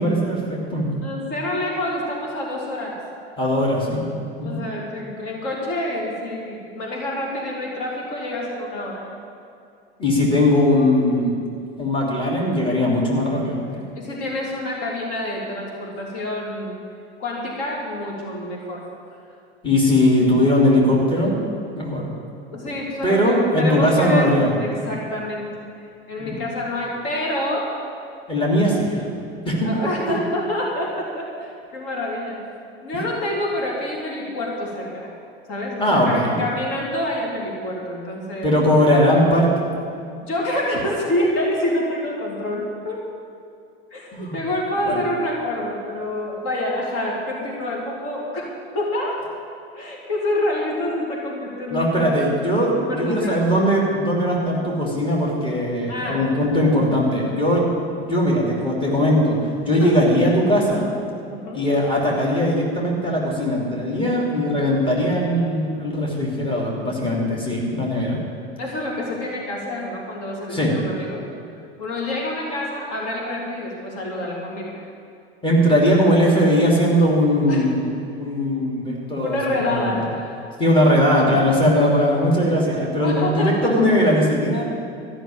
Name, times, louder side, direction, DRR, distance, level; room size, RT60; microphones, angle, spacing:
voice 1, 0.0-0.9 3.4-4.6 10.0-11.4 11.8-13.8 19.6-21.4 21.8-22.1 23.0-24.5 26.2-26.4 28.3-29.1 29.4-29.7 30.1-30.2 35.8-36.4 38.4-39.7 44.1-44.4 44.8-45.0 51.7-57.7 58.0-60.9 61.5-68.2 70.5-70.7 75.4-77.8 78.2-80.0 80.6-84.6, equal, 15° left, -3 dB, 3.0 m, -19 dB
voice 2, 1.0-3.0 4.4-9.1 13.9-16.8 17.2-18.8 22.5-24.3 24.6-25.5 26.1-27.7 29.6-32.4 32.8-35.1 35.5-38.5 40.2-43.0 43.9-49.2 49.7-52.2 52.8-53.4 55.9-56.2 59.7-59.9 61.3-61.6 68.6-71.2 71.8-74.9 77.5-77.7 79.2-80.4 83.0-83.7, left 1 dB, 50° left, -3 dB, 2.9 m, -27 dB
13.5 x 6.6 x 8.8 m, 2.5 s
figure-of-eight pair, 80°, 30 cm